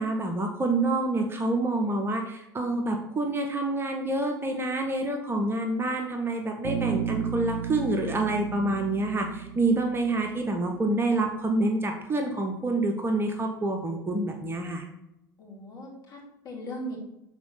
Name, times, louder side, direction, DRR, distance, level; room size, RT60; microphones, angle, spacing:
voice 1, 0.0-14.9, right 2 dB, 20° right, 3 dB, 0.9 m, -27 dB
Bass guitar, 6.6-10.7, right 7 dB, 45° right, 0.9 m, -33 dB
voice 2, 15.4-17.0, equal, 40° left, -2 dB, 2.5 m, -39 dB
6.1 x 4.3 x 5.6 m, 0.88 s
figure-of-eight pair, 70°, 11 cm